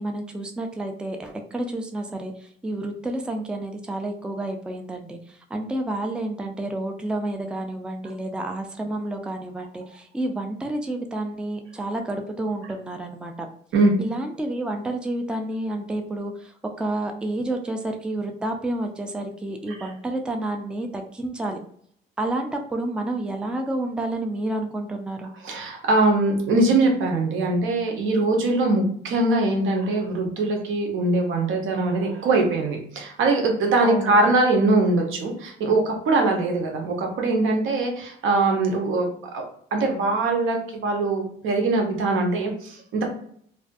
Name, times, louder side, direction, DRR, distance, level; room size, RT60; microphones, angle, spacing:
voice 1, 0.0-13.5 14.0-21.6 22.2-25.3 33.8-34.2, right 1 dB, 5° right, 4 dB, 0.3 m, -30 dB
voice 2, 25.4-39.4 39.7-43.1, right 2 dB, 85° right, 2 dB, 0.7 m, -22 dB
2.4 x 2.2 x 2.5 m, 0.62 s
cardioid pair, 90°, 20 cm